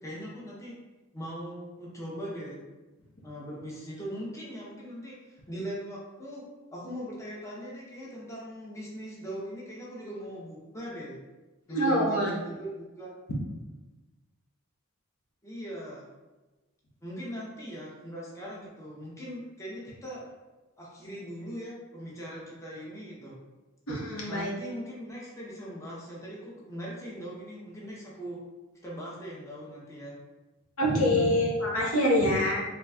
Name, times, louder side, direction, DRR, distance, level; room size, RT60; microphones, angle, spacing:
voice 1, 0.0-0.8 1.1-2.7 3.2-6.4 6.7-11.2 11.7-13.1 15.4-16.1 17.0-20.3 20.8-23.4 24.3-28.4 28.8-30.2, equal, 15° left, -5 dB, 0.7 m, -40 dB
voice 2, 11.7-12.3 23.9-24.5 30.8-32.6, equal, 70° left, -3 dB, 0.9 m, -25 dB
3.9 x 3.2 x 2.3 m, 1.2 s
head